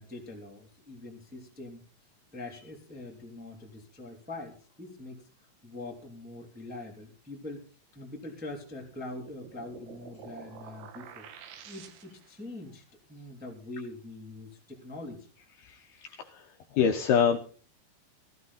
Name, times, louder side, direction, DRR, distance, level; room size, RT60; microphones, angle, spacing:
voice 1, 0.0-1.8 2.3-7.6 7.9-15.3, left 2 dB, 5° right, 0 dB, 1.6 m, -43 dB
sound 1, 8.8-12.4, right 8 dB, 75° right, 3.7 m, -49 dB
voice 2, 15.6-16.5 16.7-17.4, left 7 dB, 75° left, 4 dB, 2.4 m, -26 dB
15.5 x 14.5 x 4.1 m, 0.39 s
omnidirectional pair, 5.4 m